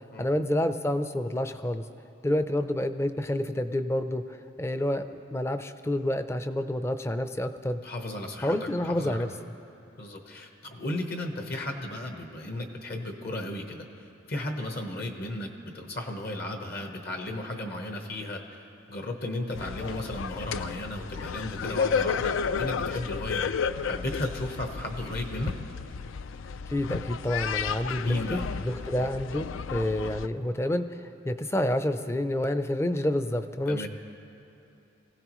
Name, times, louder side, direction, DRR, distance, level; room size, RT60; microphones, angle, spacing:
voice 1, 0.2-1.8 2.2-7.8 8.4-9.3 26.7-33.9, left 1 dB, 15° left, 9 dB, 0.5 m, -29 dB
voice 2, 7.8-9.2 10.0-13.9 14.3-18.6 18.9-23.5 23.8-25.5 28.0-28.5 28.9-29.1 33.7-33.9, left 1 dB, 50° left, 3 dB, 1.1 m, -35 dB
sound 1, 19.5-30.3, left 6 dB, 80° left, 0.4 m, -32 dB
24.5 x 16.5 x 3.1 m, 2.8 s
head